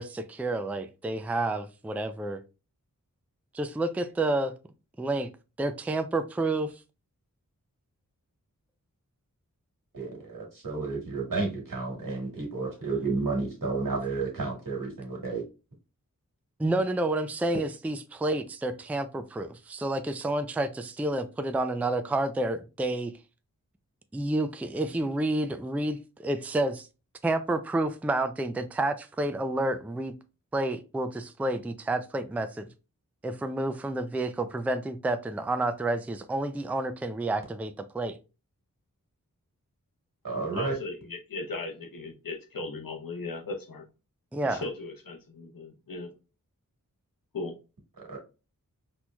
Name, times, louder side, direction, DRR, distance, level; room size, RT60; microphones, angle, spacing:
voice 1, 0.0-2.4 3.5-4.5 5.0-5.3 5.6-6.7 16.6-23.1 24.1-26.9 27.2-30.1 30.5-32.7 33.2-38.2 44.3-44.6, right 2 dB, 5° right, 0.4 m, -29 dB
voice 2, 9.9-15.4 40.2-40.8 48.1-48.2, right 3 dB, 75° right, 1.7 m, -31 dB
voice 3, 40.5-43.8 44.4-46.1 47.3-47.5, left 3 dB, 85° left, 0.9 m, -37 dB
4.3 x 2.8 x 2.3 m
wide cardioid pair, 50°, 33 cm